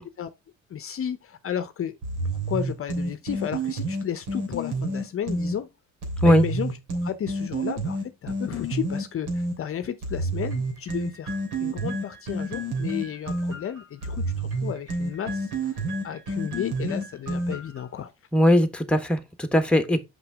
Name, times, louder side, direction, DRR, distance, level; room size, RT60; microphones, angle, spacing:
voice 1, 0.7-2.0 2.5-5.7 6.2-6.8 7.0-11.3 11.6-15.8 16.0-18.1, left 9 dB, 45° left, 0.8 m, -33 dB
sound 1, 2.0-5.6 6.0-9.6 10.0-17.8, right 2 dB, 70° right, 3.4 m, -29 dB
voice 2, 18.3-20.0, equal, 5° left, 1.3 m, -19 dB
5.9 x 5.8 x 3.4 m
supercardioid pair, 75°, 32 cm